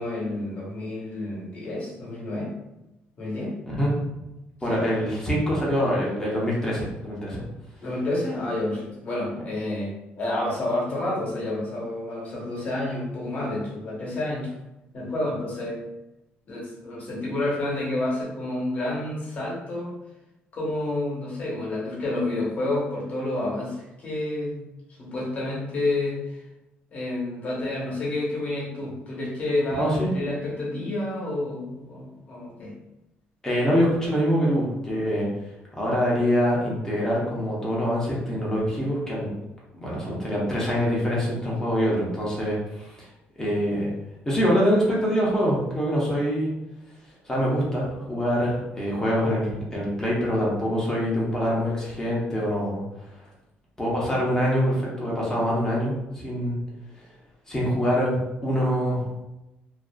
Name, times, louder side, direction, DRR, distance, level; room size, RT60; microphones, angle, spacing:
voice 1, 0.0-2.5 3.2-3.5 4.7-4.8 7.8-14.5 14.9-15.8 16.4-19.9 20.5-24.6 25.0-26.4 26.9-32.7, left 2 dB, 40° left, -5 dB, 1.0 m, -29 dB
voice 2, 3.7-4.2 4.6-7.4 29.8-30.2 33.4-35.3 35.8-39.3 39.8-43.1 43.4-43.9 44.3-46.5 47.3-52.8 53.8-56.6 57.5-59.1, equal, 15° left, -5 dB, 0.7 m, -24 dB
2.4 x 2.3 x 2.2 m, 0.95 s
cardioid pair, 140°, 4 cm